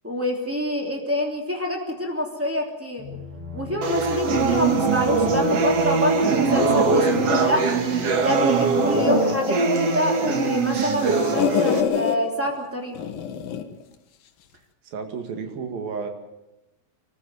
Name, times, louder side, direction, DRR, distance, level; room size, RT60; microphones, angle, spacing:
voice 1, 0.0-3.1 3.5-7.7 8.1-13.1, equal, 5° right, 1 dB, 1.5 m, -27 dB
sound 1, 3.0-10.7, left 3 dB, 35° right, 2.4 m, -39 dB
sound 2, 3.8-11.8, right 4 dB, 75° right, 1.4 m, -22 dB
sound 3, 6.5-8.3 8.7-10.4 10.7-12.2 13.0-13.7, left 8 dB, 70° left, 2.2 m, -27 dB
voice 2, 14.8-16.1, right 5 dB, 55° right, 5 dB, 3.2 m, -32 dB
25.0 x 14.5 x 7.9 m, 0.95 s
omnidirectional pair, 6.0 m